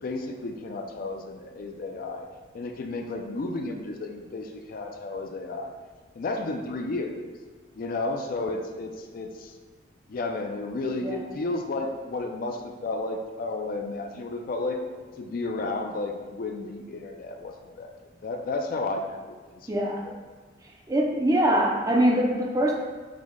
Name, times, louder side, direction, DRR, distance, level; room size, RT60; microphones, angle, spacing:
voice 1, 0.0-2.3 2.5-5.7 6.1-7.1 7.7-9.5 10.1-14.8 15.2-17.9 18.2-20.2, left 2 dB, 45° left, 3 dB, 0.4 m, -32 dB
voice 2, 19.7-20.1 20.9-22.7, right 1 dB, 20° right, 0 dB, 0.4 m, -23 dB
4.9 x 2.1 x 3.6 m, 1.4 s
head